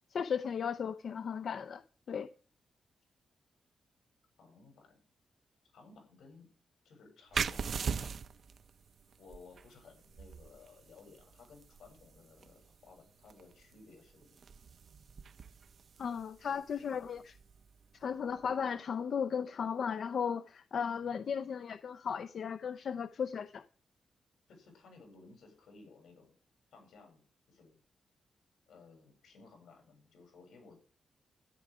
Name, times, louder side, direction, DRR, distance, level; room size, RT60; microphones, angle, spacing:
voice 1, 0.1-1.8 2.1-2.3 16.0-17.2 18.0-23.6, left 7 dB, 50° left, 0.5 m, -35 dB
voice 2, 4.4-5.0 5.7-6.5 6.8-7.9 9.2-14.4 16.5-17.0 20.9-21.2 24.5-26.3 26.7-27.2 27.5-27.8 28.7-30.8, left 4 dB, 80° left, 7.2 m, -58 dB
sound 1, 7.3-18.6, right 6 dB, 45° right, 0.6 m, -42 dB
13.0 x 11.0 x 5.0 m
wide cardioid pair, 175°, 0 cm